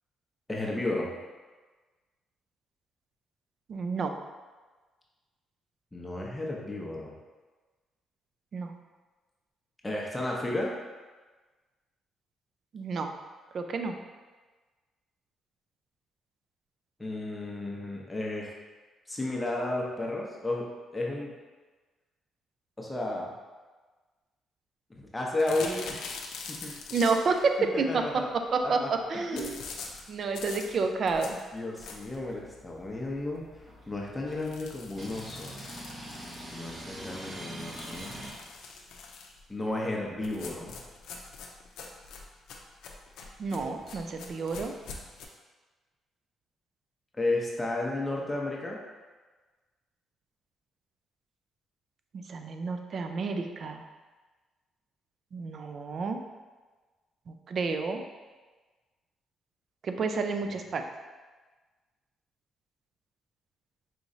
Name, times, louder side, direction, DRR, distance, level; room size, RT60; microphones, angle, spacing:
voice 1, 0.5-1.1 5.9-7.1 9.8-10.7 17.0-18.5 19.1-20.7 20.9-21.3 22.8-23.3 25.0-26.0 26.5-26.8 27.6-28.3 28.6-28.9 29.3-29.5 31.5-33.4 33.9-35.5 36.5-38.2 39.5-40.8 43.5-44.0 47.1-48.8, left 2 dB, 15° left, -2 dB, 0.7 m, -33 dB
voice 2, 3.7-4.1 8.5-8.7 12.7-13.1 13.5-13.9 26.9-29.6 30.1-31.4 43.4-44.7 52.3-53.8 55.3-56.2 57.3-58.0 59.8-60.8, right 4 dB, 55° right, 6 dB, 0.4 m, -30 dB
sound 1, 25.4-27.5 29.3-32.3 32.7-32.8 33.1-33.2 33.5-33.6 34.3-36.8 37.6-39.4 40.2-45.3, left 4 dB, 80° left, 0.5 m, -43 dB
sound 2, 32.1-38.3, right 1 dB, 35° right, 0.9 m, -44 dB
4.9 x 3.0 x 2.7 m, 1.3 s
cardioid pair, 90°, 0 cm